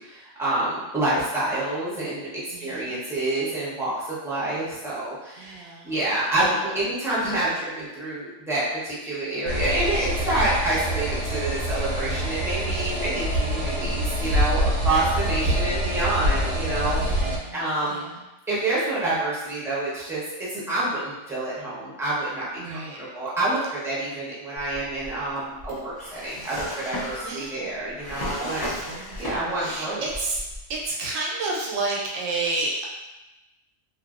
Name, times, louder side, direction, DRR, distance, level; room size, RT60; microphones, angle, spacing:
voice 1, 0.0-18.1 18.5-20.2 20.5-28.6 29.2-30.0, right 2 dB, 5° right, -9 dB, 0.6 m, -28 dB
voice 2, 2.5-3.0 5.4-6.0 13.6-14.1 14.6-14.9 16.9-17.6 17.9-18.2 22.6-23.0 27.2-27.7 28.3-29.2 29.5-30.4 30.7-32.8, right 2 dB, 85° right, -3 dB, 1.1 m, -31 dB
sound 1, 9.5-17.4, equal, 55° right, 0.7 m, -25 dB
Drawer open or close, 24.6-29.8 30.1-30.9, left 1 dB, 40° left, 0.6 m, -35 dB
2.7 x 2.6 x 2.4 m, 1.0 s
omnidirectional pair, 1.3 m